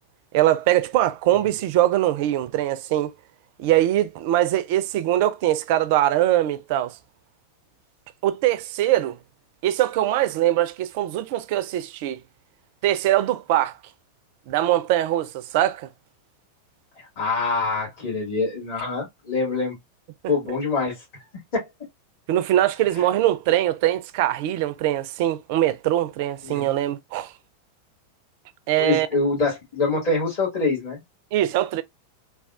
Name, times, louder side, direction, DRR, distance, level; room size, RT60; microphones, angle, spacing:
voice 1, 0.3-3.1 3.6-6.9 8.2-9.2 9.6-12.2 12.8-13.8 14.5-15.9 22.3-27.3 28.7-29.1 31.3-31.8, right 13 dB, 50° right, 0.4 m, -22 dB
voice 2, 17.0-19.8 20.3-21.0 21.5-21.7 23.0-23.1 26.4-26.7 28.8-31.0, left 3 dB, 45° left, 1.8 m, -25 dB
3.4 x 2.3 x 2.3 m
figure-of-eight pair, 90°, 0 cm